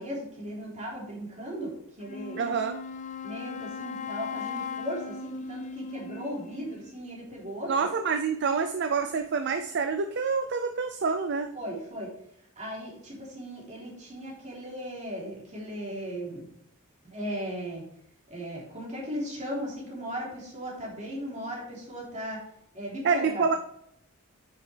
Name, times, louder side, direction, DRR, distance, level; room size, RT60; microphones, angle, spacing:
voice 1, 0.0-2.4 3.2-7.9 11.5-12.1 12.6-16.5 17.0-17.8 18.3-22.4 22.7-23.5, equal, 35° right, -4 dB, 3.4 m, -37 dB
Wind instrument woodwind instrument, 2.0-6.9, left 5 dB, 35° left, 0.6 m, -38 dB
voice 2, 2.4-2.8 7.7-11.5 23.0-23.6, right 5 dB, 50° right, 7 dB, 0.5 m, -27 dB
9.3 x 6.6 x 3.4 m, 0.73 s
head